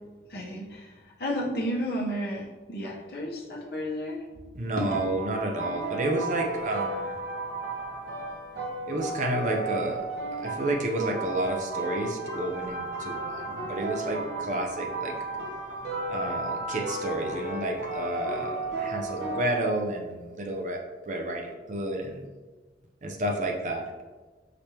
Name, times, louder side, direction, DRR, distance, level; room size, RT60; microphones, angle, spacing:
voice 1, 0.3-0.9 1.2-4.2 4.8-4.9, equal, 60° left, -3 dB, 0.9 m, -32 dB
voice 2, 4.6-7.1 8.9-10.0 10.4-15.1 16.1-20.8 21.1-22.2 23.0-23.8, right 1 dB, 45° right, 1 dB, 0.6 m, -30 dB
sound 1, 4.7-19.7, right 2 dB, 75° right, 0.9 m, -34 dB
5.0 x 3.3 x 2.9 m, 1.3 s
head